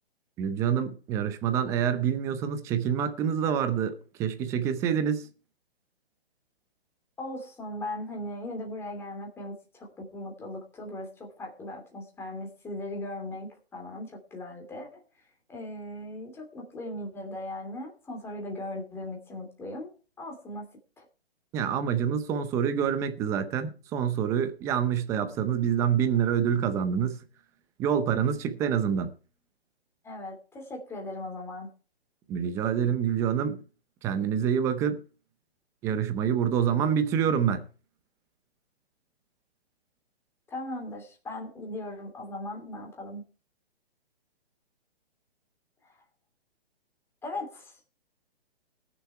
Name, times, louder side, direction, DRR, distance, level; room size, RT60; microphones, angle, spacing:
voice 1, 0.4-5.3 21.5-27.2 27.8-29.1 32.3-33.6 34.0-35.0 35.8-37.6, right 8 dB, 10° right, 0.6 m, -26 dB
voice 2, 7.2-15.0 15.5-19.9 20.2-20.7 21.0-21.1 30.0-31.7 40.5-43.2 45.8-45.9 47.2-47.8, left 1 dB, 10° left, 2.9 m, -38 dB
19.0 x 7.0 x 4.5 m
hypercardioid pair, 155°, 32 cm